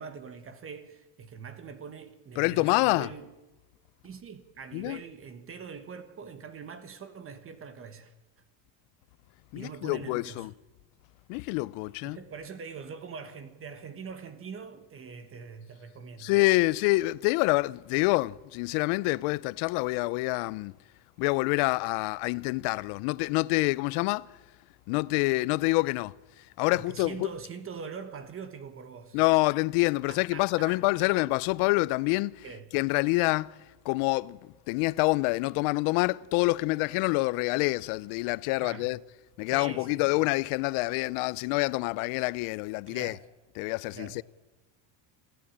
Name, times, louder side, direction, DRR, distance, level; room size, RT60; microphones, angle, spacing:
voice 1, 0.0-3.3 4.0-8.1 9.5-10.5 12.0-16.3 26.7-29.2 30.1-31.1 32.4-32.6 38.6-38.9 39.5-40.1 42.9-43.3 43.9-44.2, right 6 dB, 25° right, 1.3 m, -43 dB
voice 2, 2.4-3.1 4.7-5.0 9.5-10.5 11.3-12.2 16.2-20.7 21.2-24.3 24.9-26.1 26.6-27.3 29.1-32.4 32.7-33.5 33.8-34.4 34.7-39.0 39.4-43.2 43.6-44.2, left 23 dB, 80° left, 0.7 m, -27 dB
27.0 x 15.0 x 8.7 m
cardioid pair, 175°, 49 cm